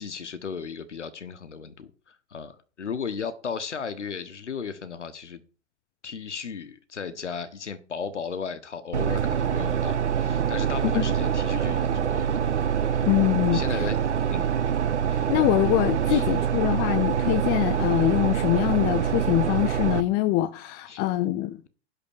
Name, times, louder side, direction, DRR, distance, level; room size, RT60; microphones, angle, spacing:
voice 1, 0.0-5.4 6.0-12.4 12.9-13.0 13.5-14.0 14.3-14.5 16.1-16.2 20.9-21.0, left 6 dB, 80° left, 1.1 m, -35 dB
sound 1, 8.9-20.0, right 8 dB, 75° right, 1.0 m, -25 dB
voice 2, 13.0-13.9 15.1-21.6, left 16 dB, 30° left, 0.6 m, -24 dB
11.0 x 3.9 x 7.2 m
figure-of-eight pair, 105°, 35 cm